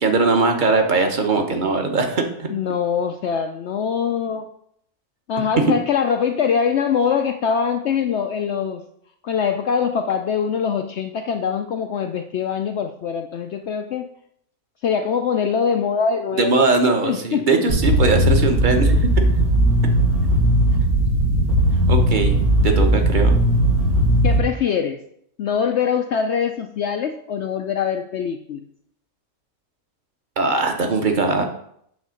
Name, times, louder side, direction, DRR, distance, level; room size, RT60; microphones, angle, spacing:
voice 1, 0.0-2.5 5.6-5.7 16.4-19.1 21.9-22.3 22.6-23.4 30.4-31.4, right 3 dB, 40° right, 4 dB, 0.9 m, -20 dB
voice 2, 2.5-4.5 5.3-8.8 9.2-14.1 14.8-16.6 17.0-17.6 24.2-25.0 25.4-28.6, left 7 dB, 70° left, 6 dB, 0.6 m, -23 dB
sound 1, 17.7-24.4, right 1 dB, 70° right, 1.8 m, -17 dB
8.4 x 3.6 x 6.3 m, 0.70 s
omnidirectional pair, 1.6 m